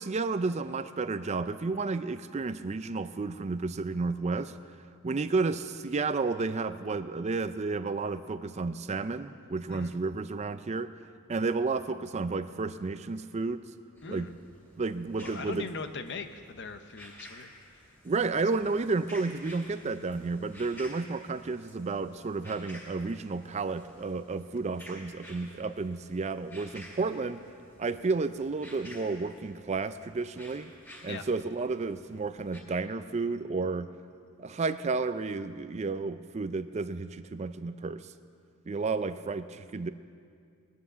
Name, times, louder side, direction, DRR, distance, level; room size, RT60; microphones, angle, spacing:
voice 1, 0.0-4.5 5.0-10.9 11.3-13.6 14.1-14.3 14.8-15.7 18.0-27.4 27.8-30.7 31.0-33.9 34.4-38.1 38.7-39.9, right 3 dB, 30° right, 12 dB, 0.4 m, -32 dB
sound 1, 14.0-32.6, equal, 10° left, 2.8 m, -52 dB
voice 2, 15.2-17.5 31.0-31.2, left 4 dB, 50° left, 8 dB, 0.8 m, -40 dB
19.5 x 9.5 x 6.8 m, 2.3 s
head